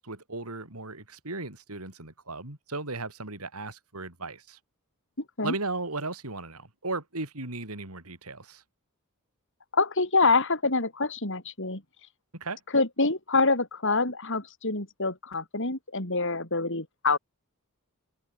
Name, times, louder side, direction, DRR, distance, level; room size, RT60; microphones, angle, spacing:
voice 1, 0.0-4.6 5.4-8.6 12.3-12.6, right 3 dB, 80° right, 4.8 m, -36 dB
voice 2, 5.2-5.5 9.7-11.8 12.7-17.2, left 3 dB, 60° left, 5.9 m, -26 dB
head